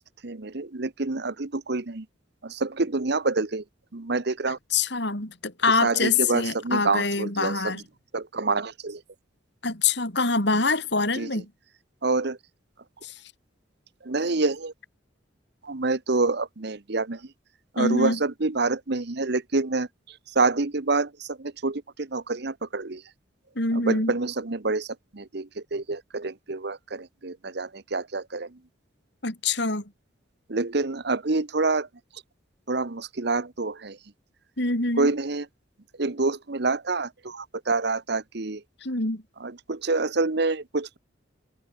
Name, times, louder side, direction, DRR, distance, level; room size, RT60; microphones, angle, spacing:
voice 1, 0.0-2.1 2.4-3.6 3.9-4.6 5.8-7.8 8.1-9.0 11.2-11.3 12.0-12.4 14.0-14.7 15.6-17.2 17.7-19.9 20.3-23.0 23.7-24.9 25.1-28.6 30.5-31.9 32.7-34.0 35.0-35.5 36.0-38.6 39.4-41.0, right 3 dB, 60° right, 1.1 m, -27 dB
voice 2, 4.7-7.8 9.6-11.5 13.0-13.2 17.8-18.2 23.5-24.1 29.2-29.8 34.6-35.1 38.8-39.2, left 3 dB, 60° left, 5.1 m, -25 dB
head